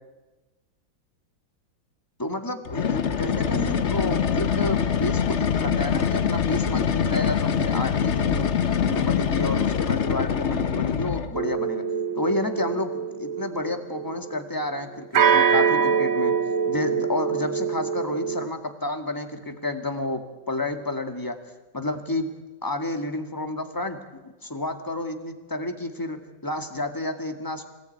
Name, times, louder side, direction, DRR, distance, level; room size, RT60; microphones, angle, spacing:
voice 1, 2.2-8.5 8.8-11.8 12.2-16.4 16.7-21.4 21.7-22.3 22.6-24.0 24.2-27.7, left 2 dB, 10° left, 6 dB, 1.9 m, -30 dB
sound 1, 2.7-11.4, left 7 dB, 45° left, 1.0 m, -24 dB
sound 2, 11.3-14.4 15.1-18.5, right 7 dB, 75° right, 1.9 m, -24 dB
25.5 x 18.5 x 9.3 m, 1.1 s
omnidirectional pair, 2.2 m